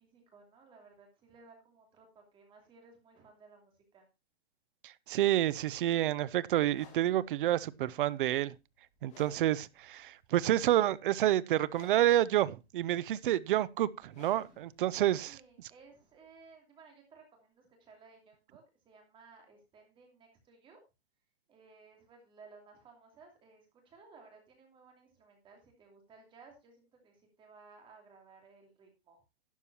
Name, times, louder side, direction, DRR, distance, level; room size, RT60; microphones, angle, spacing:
voice 1, 0.0-4.1 15.2-20.8 21.5-29.2, right 4 dB, 15° right, 2.8 m, -58 dB
voice 2, 4.8-8.5 9.0-15.4, right 13 dB, 50° right, 0.6 m, -29 dB
sound 1, 6.7-16.5, left 5 dB, 20° left, 2.3 m, -61 dB
12.0 x 10.0 x 2.8 m
hypercardioid pair, 165°, 32 cm